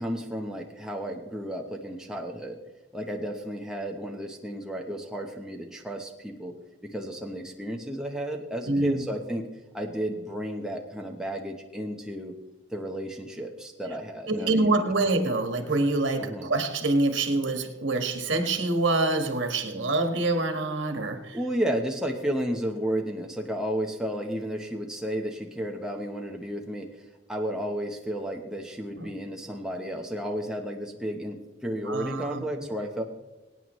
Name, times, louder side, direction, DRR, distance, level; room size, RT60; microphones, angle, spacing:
voice 1, 0.0-2.6 2.9-6.5 6.8-9.5 9.7-12.3 12.7-14.8 16.2-16.5 21.3-26.9 27.3-33.0, equal, 5° right, 1 dB, 0.9 m, -32 dB
voice 2, 8.6-9.0 14.3-21.4 29.0-29.1 31.8-32.4, right 2 dB, 70° right, 6 dB, 1.4 m, -26 dB
24.0 x 9.1 x 3.1 m, 1.1 s
head